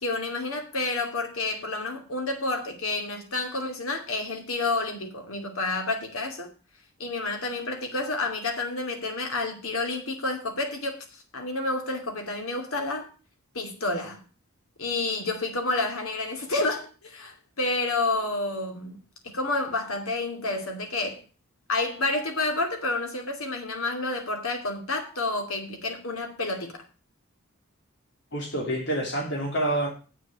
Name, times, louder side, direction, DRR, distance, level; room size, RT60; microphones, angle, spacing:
voice 1, 0.0-6.5 7.0-11.0 11.3-13.1 13.5-14.2 14.8-19.0 19.2-21.2 21.7-26.8, left 2 dB, 75° left, 2.6 m, -29 dB
voice 2, 28.3-29.9, right 1 dB, 55° left, 2.9 m, -27 dB
7.9 x 6.7 x 8.3 m
head